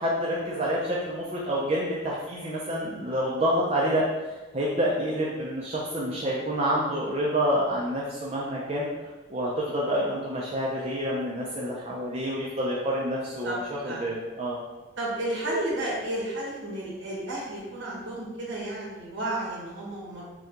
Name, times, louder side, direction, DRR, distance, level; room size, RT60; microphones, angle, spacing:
voice 1, 0.0-4.1 4.5-8.9 9.3-14.6, equal, 30° right, -5 dB, 0.5 m, -28 dB
voice 2, 15.0-20.2, right 1 dB, 65° right, -5 dB, 1.2 m, -32 dB
6.0 x 2.3 x 2.9 m, 1.2 s
head